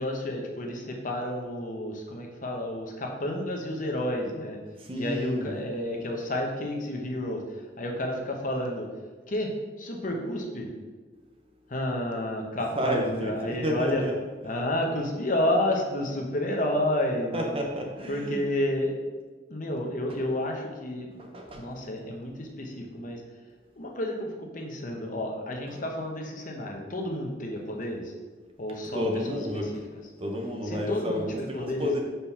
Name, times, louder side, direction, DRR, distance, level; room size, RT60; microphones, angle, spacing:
voice 1, 0.0-4.6 4.9-8.9 9.3-9.5 9.8-10.7 11.7-14.0 14.4-17.5 18.1-19.0 19.5-23.2 23.8-28.1 28.6-29.7 30.6-31.9, left 1 dB, 40° left, 1 dB, 0.9 m, -30 dB
voice 2, 4.8-5.5 12.8-14.1 17.3-18.4 20.1-20.2 21.2-21.6 25.7-25.8 28.9-29.8 30.2-32.0, equal, 30° right, 1 dB, 0.8 m, -31 dB
5.2 x 4.5 x 5.6 m, 1.4 s
head